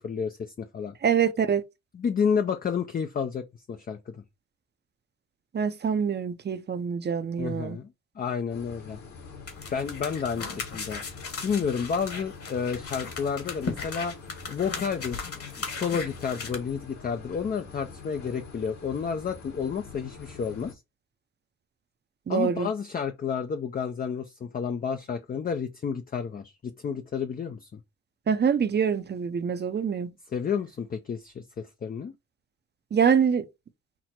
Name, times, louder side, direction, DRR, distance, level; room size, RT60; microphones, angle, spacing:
voice 1, 0.0-0.9 1.9-4.2 7.4-7.9 8.2-9.0 9.7-11.0 11.4-14.1 14.5-15.2 15.6-20.8 22.3-27.8 30.3-32.1, left 6 dB, 30° left, 0.5 m, -30 dB
voice 2, 1.0-1.6 5.5-7.8 22.3-22.7 28.3-30.1 32.9-33.4, right 7 dB, 35° right, 0.6 m, -25 dB
sound 1, 8.5-20.7, left 4 dB, 65° left, 2.0 m, -45 dB
sound 2, 9.5-16.5, left 4 dB, 50° left, 1.7 m, -37 dB
6.0 x 2.1 x 4.3 m
cardioid pair, 90°, 30 cm